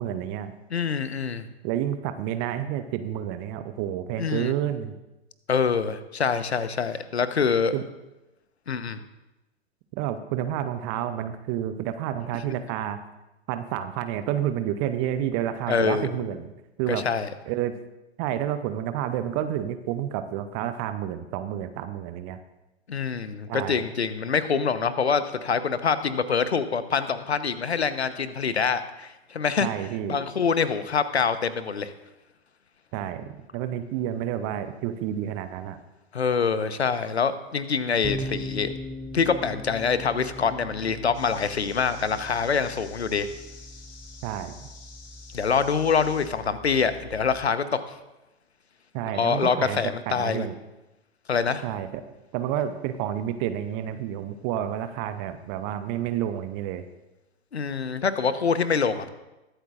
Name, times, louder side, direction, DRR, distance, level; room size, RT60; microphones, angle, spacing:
voice 1, 0.0-0.5 1.6-4.9 7.7-7.8 10.0-13.0 13.5-16.5 16.8-17.1 17.4-17.8 18.2-22.4 23.5-23.8 29.6-30.2 32.9-35.8 44.2-44.7 48.9-49.8 50.1-50.5 51.6-52.0 52.3-56.8, right 11 dB, 20° right, 11 dB, 0.4 m, -30 dB
voice 2, 0.7-1.5 4.2-4.5 5.5-7.7 8.7-9.0 15.7-16.1 16.9-17.3 22.9-29.7 30.1-31.9 36.1-38.7 39.1-43.3 45.3-47.8 49.1-50.5 51.3-51.6 57.5-59.1, left 6 dB, 75° left, 13 dB, 0.9 m, -25 dB
sound 1, 38.0-47.5, equal, 5° right, 1.7 m, -40 dB
sound 2, 41.1-46.3, left 5 dB, 55° left, 2.7 m, -49 dB
22.0 x 8.1 x 2.4 m, 1.0 s
figure-of-eight pair, 105°, 33 cm